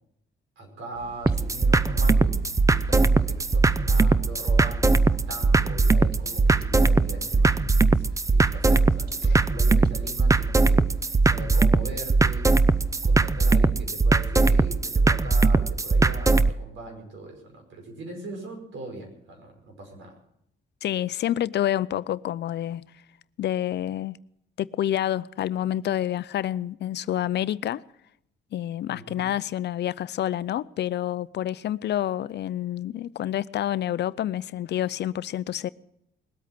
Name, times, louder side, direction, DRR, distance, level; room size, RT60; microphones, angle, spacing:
voice 1, 0.6-12.5 13.0-20.2 28.9-29.2, right 2 dB, 75° right, 5.3 m, -40 dB
sound 1, 0.9-13.2, right 2 dB, 50° right, 2.0 m, -44 dB
sound 2, 1.3-16.5, right 3 dB, 15° right, 0.5 m, -21 dB
voice 2, 20.8-22.9 23.4-24.2 24.6-27.8 28.5-35.7, left 12 dB, 60° left, 0.5 m, -28 dB
20.5 x 8.4 x 7.4 m
cardioid pair, 90°, 20 cm